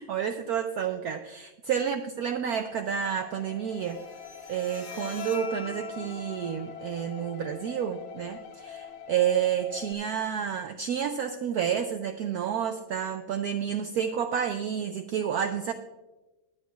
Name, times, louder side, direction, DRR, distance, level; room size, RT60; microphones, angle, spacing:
voice 1, 0.0-4.0 4.5-15.7, right 8 dB, 75° right, 8 dB, 0.8 m, -30 dB
sound 1, 2.6-9.9, left 7 dB, 80° left, 1.5 m, -46 dB
Bowed string instrument, 3.7-10.7, left 5 dB, 35° left, 1.3 m, -44 dB
22.5 x 8.2 x 2.4 m, 1.1 s
omnidirectional pair, 2.1 m